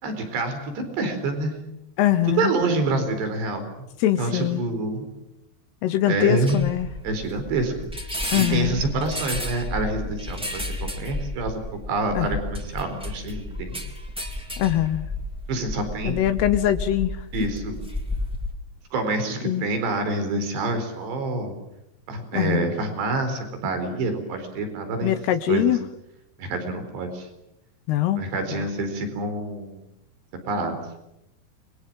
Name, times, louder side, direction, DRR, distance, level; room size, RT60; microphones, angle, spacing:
voice 1, 0.0-1.6 2.4-3.9 4.2-5.1 6.1-6.6 7.0-7.9 8.3-13.8 15.5-16.3 17.3-17.9 18.9-21.6 22.1-25.1 25.5-25.7 26.4-27.3 28.2-29.8 30.5-30.8, right 2 dB, 80° right, 7 dB, 6.5 m, -27 dB
voice 2, 2.0-2.5 4.0-4.7 5.8-6.9 8.3-8.8 12.1-12.3 14.6-15.1 16.0-17.2 19.4-19.7 22.3-22.7 25.0-25.8 27.9-28.2 28.5-28.6, left 12 dB, 75° left, 11 dB, 3.1 m, -22 dB
sound 1, 6.5-18.5, left 1 dB, ahead, 3.1 m, -32 dB
30.0 x 23.0 x 7.7 m, 0.86 s
omnidirectional pair, 4.9 m